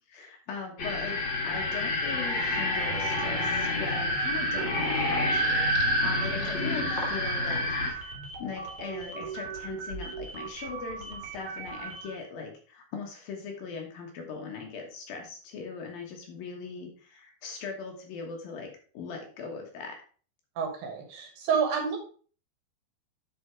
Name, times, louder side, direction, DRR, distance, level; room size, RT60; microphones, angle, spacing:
voice 1, 0.0-8.1 8.4-18.7 18.9-20.0, left 5 dB, 65° left, 2 dB, 2.8 m, -40 dB
sound 1, 0.8-7.9, left 1 dB, 85° left, 1.0 m, -28 dB
sound 2, 2.7-12.3, right 4 dB, 45° right, 2.1 m, -39 dB
voice 2, 20.6-22.0, right 6 dB, 65° right, 4 dB, 2.9 m, -29 dB
10.5 x 4.4 x 4.5 m, 0.41 s
omnidirectional pair, 4.9 m